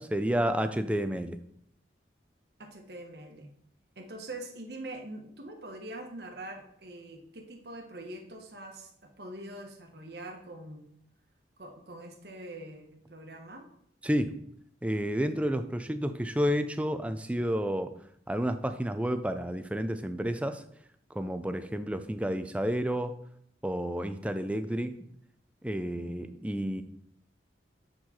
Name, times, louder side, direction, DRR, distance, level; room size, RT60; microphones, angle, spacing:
voice 1, 0.0-1.4 14.0-14.4 14.8-17.9 18.3-20.6 21.1-23.1 23.6-25.0 25.6-26.8, equal, 5° right, 9 dB, 0.3 m, -30 dB
voice 2, 2.6-3.5 4.0-10.8 11.6-13.6 26.0-26.5, right 1 dB, 60° right, 3 dB, 1.1 m, -44 dB
7.6 x 4.6 x 4.2 m, 0.70 s
head